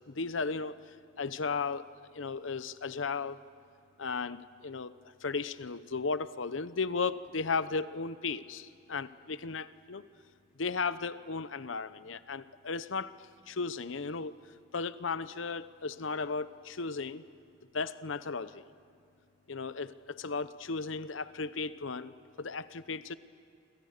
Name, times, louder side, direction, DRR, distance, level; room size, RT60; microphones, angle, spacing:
voice 1, 0.1-0.8 1.2-1.9 2.1-3.4 4.0-4.9 5.2-10.0 10.6-13.1 13.5-14.4 14.7-17.2 17.7-18.6 19.5-22.1 22.4-23.2, left 4 dB, 85° left, 14 dB, 0.9 m, -35 dB
29.0 x 26.0 x 6.7 m, 2.6 s
head